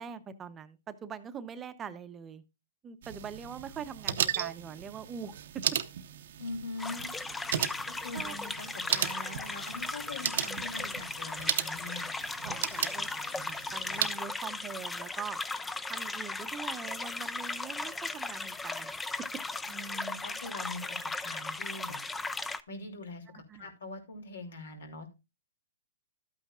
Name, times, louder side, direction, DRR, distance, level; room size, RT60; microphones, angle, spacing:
voice 1, 0.0-2.4 2.8-5.6 8.1-8.4 12.4-15.4 15.9-19.0 19.3-19.4 23.3-23.7, right 7 dB, 20° right, 0.8 m, -43 dB
sound 1, 3.0-14.2, right 10 dB, 65° right, 0.8 m, -36 dB
voice 2, 6.4-7.1 7.9-12.1 19.7-22.0 22.7-25.1, left 2 dB, 80° left, 3.1 m, -43 dB
sound 2, 6.8-22.6, left 3 dB, 10° left, 0.5 m, -37 dB
12.5 x 8.9 x 2.4 m
hypercardioid pair, 140°, 0 cm